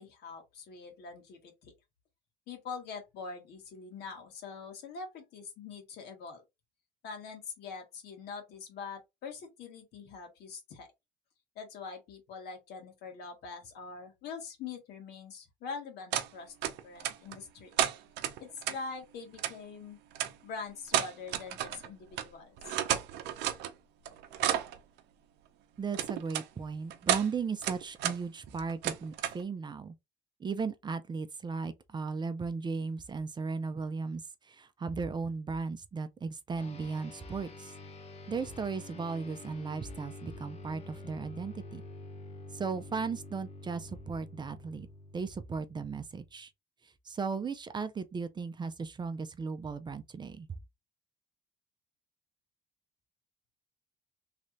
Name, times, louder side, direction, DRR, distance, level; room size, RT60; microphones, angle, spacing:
voice 1, 0.0-1.7 2.5-6.4 7.0-10.9 11.5-17.9 18.4-20.0 20.4-22.8, left 5 dB, 75° left, 1.6 m, -44 dB
sound 1, 16.1-16.3 16.6-17.4 17.8-18.8 19.4-19.5 20.1-20.3 20.9-21.9 22.1-22.3 22.6-23.7 24.1-24.8 25.9-26.4 26.9-27.3 27.6-28.2 28.5-29.4, right 11 dB, 90° right, 0.6 m, -31 dB
voice 2, 25.8-29.9 30.4-34.2 34.5-37.7 38.3-41.8 42.5-44.9 45.1-46.5 47.1-50.5, right 5 dB, 25° right, 0.5 m, -36 dB
sound 2, 36.6-46.3, left 2 dB, 40° left, 1.0 m, -48 dB
3.3 x 2.5 x 3.1 m
cardioid pair, 110°, 17 cm